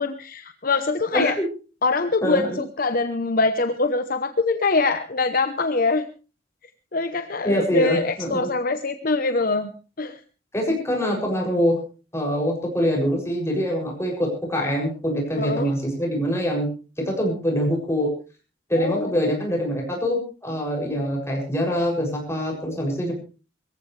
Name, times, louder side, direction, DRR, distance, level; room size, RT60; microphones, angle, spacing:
voice 1, 0.0-1.4 1.8-6.1 6.9-9.7 10.0-10.2 15.4-15.7 18.8-19.4, left 3 dB, 50° left, 9 dB, 0.9 m, -23 dB
voice 2, 1.1-1.5 2.2-2.6 7.4-8.5 10.5-11.8 12.1-16.7 17.0-18.1 18.7-23.1, equal, 15° left, -1 dB, 7.1 m, -24 dB
22.5 x 15.0 x 3.3 m, 0.35 s
head